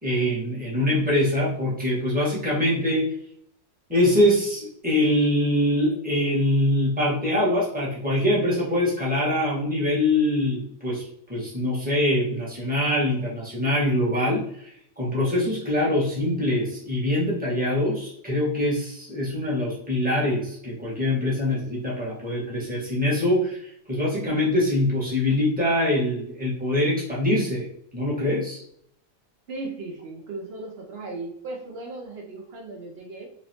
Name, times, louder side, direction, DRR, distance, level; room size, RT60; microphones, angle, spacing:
voice 1, 0.0-3.1 3.9-11.0 11.3-14.7 15.0-27.7 27.9-28.6, left 1 dB, 5° right, -6 dB, 1.1 m, -24 dB
voice 2, 29.5-33.3, right 2 dB, 85° right, 0 dB, 0.5 m, -36 dB
3.1 x 2.9 x 2.7 m, 0.69 s
omnidirectional pair, 1.7 m